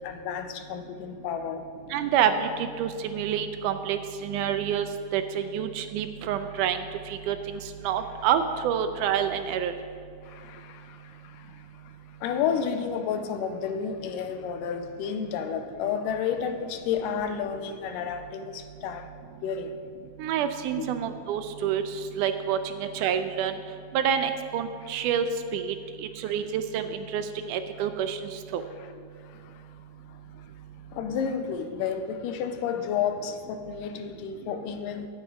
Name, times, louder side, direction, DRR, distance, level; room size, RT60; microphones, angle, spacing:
voice 1, 0.0-1.7 10.2-11.9 12.2-19.1 19.4-19.8 20.8-20.9 28.8-29.8 30.1-30.5 30.9-35.1, left 7 dB, 90° left, 2.3 m, -31 dB
voice 2, 1.9-4.9 5.1-6.8 7.1-9.7 20.2-23.6 23.9-25.3 25.5-26.9 27.1-28.6, right 8 dB, 80° right, 2.0 m, -28 dB
12.5 x 9.2 x 4.9 m
omnidirectional pair, 3.7 m